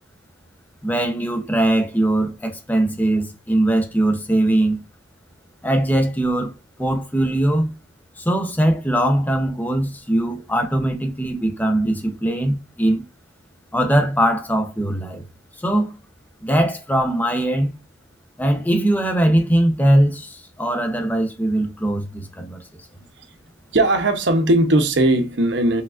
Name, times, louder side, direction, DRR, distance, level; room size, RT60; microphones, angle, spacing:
voice 1, 0.8-4.8 5.6-7.7 8.2-13.0 13.7-15.2 15.5-15.9 16.4-17.7 18.4-22.9, right 1 dB, 10° left, 0.7 m, -21 dB
voice 2, 23.7-25.8, right 1 dB, 65° right, 0.8 m, -18 dB
4.8 x 3.5 x 2.4 m
head